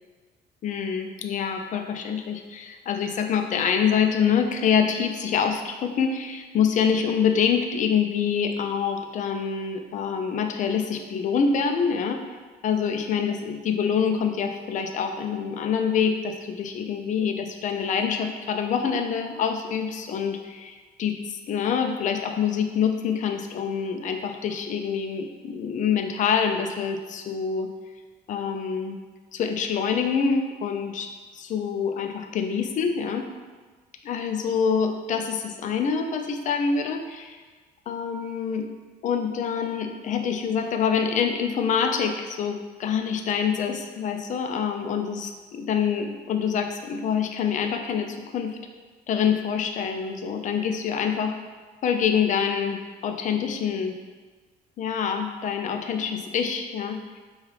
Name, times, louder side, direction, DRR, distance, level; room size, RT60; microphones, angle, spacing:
voice 1, 0.6-12.2 12.6-27.7 28.3-29.0 29.3-33.3 34.0-37.4 37.9-38.7 39.0-48.6 49.1-51.3 51.8-54.0 54.8-57.2, left 7 dB, 50° left, 5 dB, 0.4 m, -26 dB
4.8 x 2.4 x 3.2 m, 1.4 s
cardioid pair, 110°, 17 cm